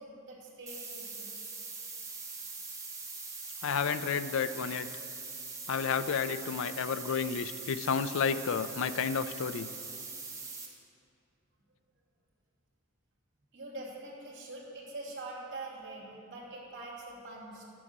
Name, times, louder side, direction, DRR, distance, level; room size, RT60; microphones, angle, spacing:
voice 1, 0.0-1.3 9.9-10.2 13.5-17.6, right 2 dB, 60° right, -4 dB, 2.6 m, -44 dB
sound 1, 0.7-10.7, right 4 dB, 15° right, 1.3 m, -42 dB
voice 2, 3.6-4.9 5.7-9.7, left 6 dB, 65° left, 12 dB, 0.4 m, -31 dB
11.0 x 7.6 x 6.6 m, 2.5 s
head